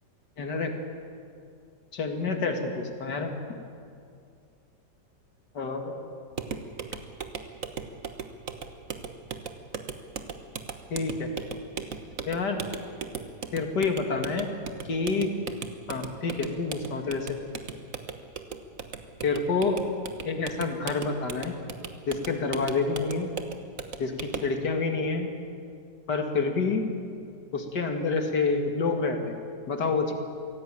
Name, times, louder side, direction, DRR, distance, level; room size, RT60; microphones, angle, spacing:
voice 1, 0.4-0.8 1.9-3.3 5.5-6.0 10.9-11.3 12.3-12.6 13.5-14.5 14.8-15.3 15.9-17.4 19.2-19.8 20.2-21.5 22.1-23.3 24.0-25.3 26.1-26.8 27.5-29.4 29.7-30.1, left 4 dB, 70° left, 4 dB, 2.6 m, -28 dB
sound 1, 6.3-24.6, right 5 dB, 50° right, 1.6 m, -38 dB
24.5 x 16.5 x 9.0 m, 2.4 s
omnidirectional pair, 1.9 m